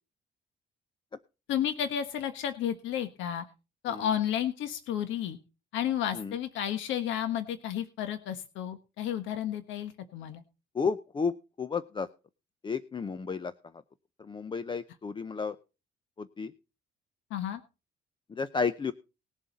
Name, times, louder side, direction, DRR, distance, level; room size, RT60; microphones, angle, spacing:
voice 1, 1.5-3.4 3.8-5.4 5.7-10.4 17.3-17.6, left 10 dB, 85° left, 9 dB, 1.4 m, -32 dB
voice 2, 10.7-12.1 12.6-13.5 14.2-15.6 16.2-16.5 18.3-18.9, left 5 dB, 25° left, 13 dB, 0.6 m, -32 dB
19.5 x 7.5 x 4.0 m, 0.31 s
cardioid pair, 130°, 19 cm